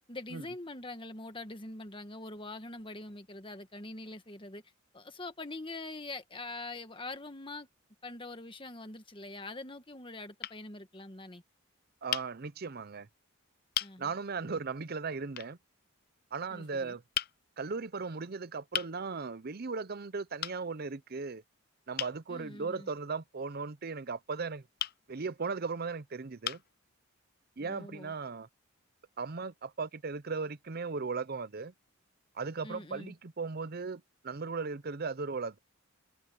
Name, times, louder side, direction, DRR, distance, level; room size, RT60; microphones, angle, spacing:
voice 1, 0.1-4.6 4.9-7.7 8.0-11.4 13.8-14.1 16.5-17.0 22.3-22.9 27.6-28.1 32.6-33.1, left 2 dB, 25° left, 1.6 m, -44 dB
sound 1, 8.6-9.3 10.0-10.1 10.4-10.6 12.1-12.3 13.1-13.2 13.7-14.0 15.4-15.5 17.1-17.4 18.7-19.0 20.4-20.6 22.0-22.2 24.8-25.0 25.8-25.9 26.4-26.7, left 11 dB, 45° left, 0.5 m, -35 dB
voice 2, 12.0-13.1 14.0-15.6 16.3-17.0 17.6-21.4 21.9-24.6 25.1-26.6 27.6-28.5 29.2-31.7 32.3-35.6, right 4 dB, 45° right, 0.7 m, -37 dB
head